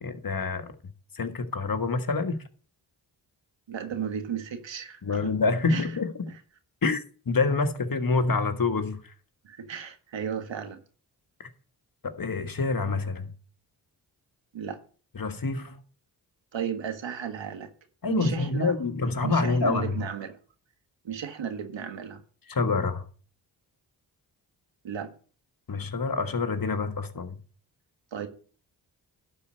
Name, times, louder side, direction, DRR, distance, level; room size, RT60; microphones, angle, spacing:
voice 1, 0.0-0.7 1.1-2.4 5.0-6.3 6.8-9.1 11.4-11.5 12.0-13.3 15.1-15.8 18.0-20.0 22.5-23.1 25.7-27.4, left 4 dB, 45° left, 1.5 m, -27 dB
voice 2, 3.7-5.3 5.7-5.8 9.4-10.8 14.5-14.8 16.5-17.7 18.1-18.7 19.2-20.4 21.0-22.2 24.8-25.2 28.1-28.3, right 8 dB, 70° right, 1.6 m, -34 dB
11.5 x 4.4 x 7.6 m
supercardioid pair, 40°, 46 cm